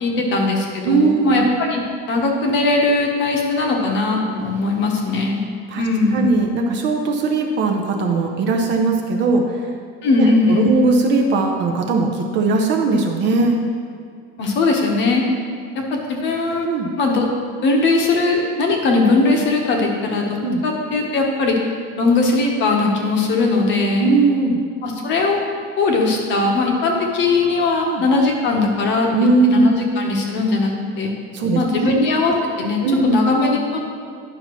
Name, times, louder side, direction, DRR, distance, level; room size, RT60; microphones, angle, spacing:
voice 1, 0.0-1.8 2.1-5.4 5.8-6.3 10.0-10.8 14.4-15.2 15.7-16.7 17.0-17.3 17.6-20.4 20.6-21.6 22.0-24.1 24.8-25.4 25.8-29.1 29.4-30.7 31.0-31.1 31.5-33.6, left 3 dB, 40° left, 1 dB, 1.0 m, -19 dB
voice 2, 0.9-1.5 5.7-5.8 6.1-9.6 10.2-13.6 16.6-16.9 20.4-20.6 24.0-24.6 27.9-28.0 29.1-29.7 31.3-31.9 32.8-33.1, right 3 dB, 35° right, 2 dB, 0.7 m, -19 dB
10.5 x 5.6 x 3.0 m, 2.2 s
cardioid pair, 160°, 30 cm